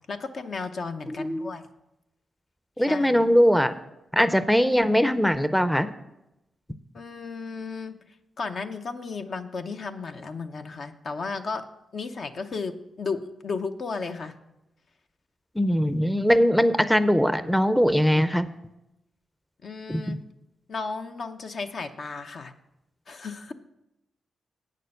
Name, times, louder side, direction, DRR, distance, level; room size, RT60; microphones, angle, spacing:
voice 1, 0.1-1.7 2.9-3.2 6.9-11.6 11.9-12.7 13.0-14.3 19.6-20.2 20.7-22.5 23.1-23.5, left 4 dB, 60° left, 6 dB, 0.8 m, -34 dB
voice 2, 1.2-1.5 2.8-3.8 4.1-5.9 15.6-18.5 19.9-20.2, equal, 5° left, 12 dB, 0.5 m, -21 dB
8.6 x 6.6 x 6.6 m, 0.90 s
cardioid pair, 65°, 0 cm